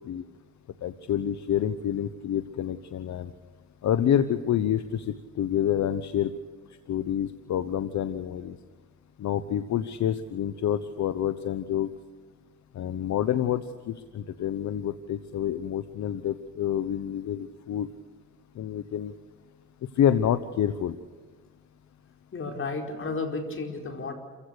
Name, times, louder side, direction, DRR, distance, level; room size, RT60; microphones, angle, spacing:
voice 1, 0.8-3.3 3.8-6.3 6.9-8.6 9.2-11.9 12.7-17.9 18.5-19.1 19.9-21.0, left 10 dB, 65° left, 12 dB, 1.0 m, -28 dB
voice 2, 22.3-24.1, left 3 dB, 45° left, 3 dB, 4.8 m, -32 dB
28.5 x 16.0 x 6.7 m, 1.5 s
cardioid pair, 90°, 30 cm